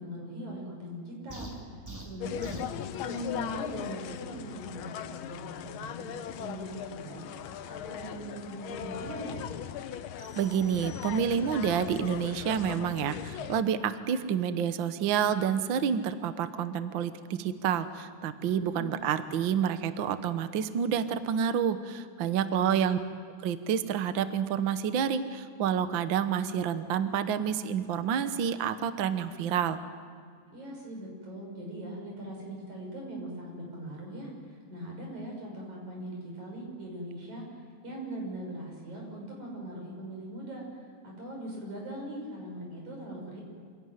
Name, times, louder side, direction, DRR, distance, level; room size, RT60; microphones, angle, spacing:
voice 1, 0.0-1.5 2.0-2.7 3.0-6.1 6.4-7.2 7.7-9.4 18.4-18.9 22.2-22.7 30.5-34.3 34.7-40.6 41.0-43.4, right 1 dB, 80° right, 0 dB, 7.5 m, -40 dB
sound 1, 1.3-2.8, right 1 dB, 5° right, 2.6 m, -42 dB
sound 2, 2.2-13.6, left 9 dB, 75° left, 1.2 m, -39 dB
sound 3, 10.2-11.7, left 1 dB, 25° left, 6.6 m, -55 dB
voice 2, 10.4-23.0 23.4-29.8, right 8 dB, 65° right, 10 dB, 1.3 m, -29 dB
26.0 x 17.0 x 9.3 m, 2.2 s
omnidirectional pair, 3.3 m